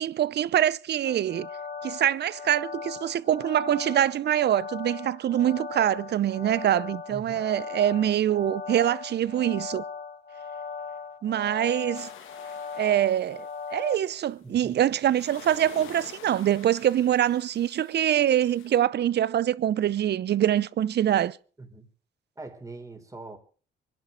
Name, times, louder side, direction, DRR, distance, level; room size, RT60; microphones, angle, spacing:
voice 1, 0.0-1.5 1.8-9.8 11.2-12.1 12.7-21.4, right 11 dB, 55° right, 0.7 m, -24 dB
sound 1, 1.0-14.0, left 5 dB, 45° left, 2.6 m, -39 dB
voice 2, 7.1-7.4 14.4-14.8 21.6-21.9 22.4-23.4, right 2 dB, 15° right, 4.1 m, -42 dB
sound 2, 11.9-14.1 14.7-18.8, left 9 dB, 85° left, 1.8 m, -49 dB
24.5 x 11.0 x 4.0 m
cardioid pair, 90°, 20 cm